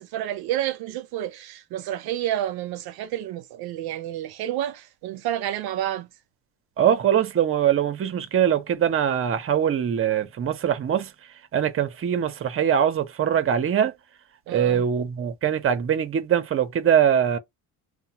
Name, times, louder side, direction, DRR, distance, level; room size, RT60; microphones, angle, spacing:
voice 1, 0.0-6.1 14.5-14.8, right 12 dB, 80° right, 0.5 m, -30 dB
voice 2, 6.8-11.1 11.5-13.9 14.5-17.4, right 9 dB, 35° right, 0.6 m, -22 dB
2.7 x 2.1 x 2.7 m
cardioid pair, 100°, 38 cm